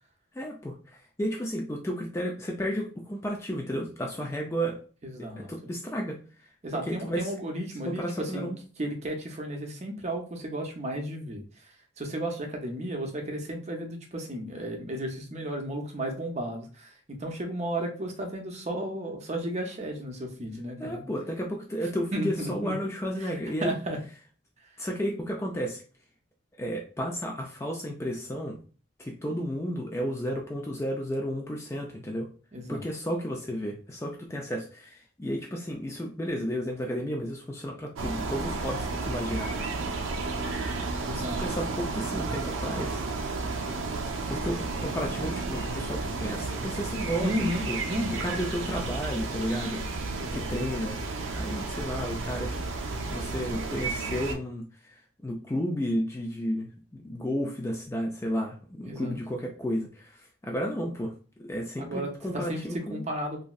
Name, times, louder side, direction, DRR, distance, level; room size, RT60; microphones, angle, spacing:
voice 1, 0.3-4.8 5.2-6.5 6.9-7.3 7.9-8.6 20.8-23.8 24.8-25.8 26.6-28.6 29.0-32.3 32.7-39.5 41.1-43.0 44.3-47.8 48.2-49.8 50.3-51.0 51.3-52.6 53.0-61.1 61.4-63.1, equal, 15° left, 1 dB, 0.3 m, -32 dB
voice 2, 5.0-5.5 6.6-8.5 8.8-11.4 12.0-21.0 22.1-22.7 23.2-23.3 23.6-24.0 32.5-32.8 41.0-41.4 47.2-48.2 50.2-50.7 58.8-59.2 61.8-62.6 62.9-63.4, right 1 dB, 35° right, 3 dB, 0.6 m, -33 dB
sound 1, 38.0-54.3, right 3 dB, 80° right, 0.5 m, -32 dB
3.0 x 2.5 x 2.3 m, 0.38 s
head